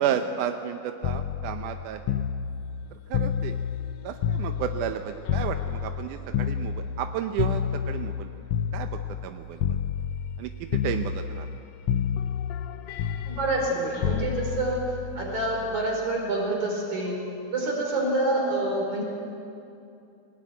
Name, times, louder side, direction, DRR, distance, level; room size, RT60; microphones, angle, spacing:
voice 1, 0.0-2.2 3.1-3.6 4.0-8.3 8.7-9.6 10.4-11.5, right 9 dB, 90° right, 6 dB, 2.3 m, -32 dB
sound 1, 1.0-5.0 5.3-9.3 9.6-10.4 10.7-11.6 11.9-15.9 17.1-17.3, left 8 dB, 75° left, 1.8 m, -29 dB
voice 2, 13.3-14.8 15.2-17.2 17.5-19.0, right 2 dB, 70° right, -1 dB, 5.9 m, -27 dB
20.0 x 19.5 x 9.2 m, 2.7 s
omnidirectional pair, 3.5 m